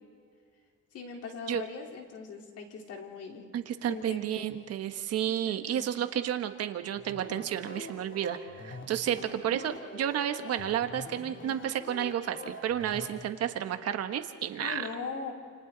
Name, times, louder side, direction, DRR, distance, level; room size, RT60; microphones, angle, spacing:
voice 1, 0.9-3.4 3.9-4.5 5.3-5.9 9.5-9.6 14.6-15.3, left 5 dB, 55° left, 1 dB, 3.9 m, -40 dB
voice 2, 3.5-14.8, right 10 dB, 55° right, 8 dB, 1.4 m, -31 dB
sound 1, 6.9-13.1, left 2 dB, 40° left, 3.0 m, -45 dB
29.0 x 29.0 x 4.0 m, 2.1 s
cardioid pair, 140°, 30 cm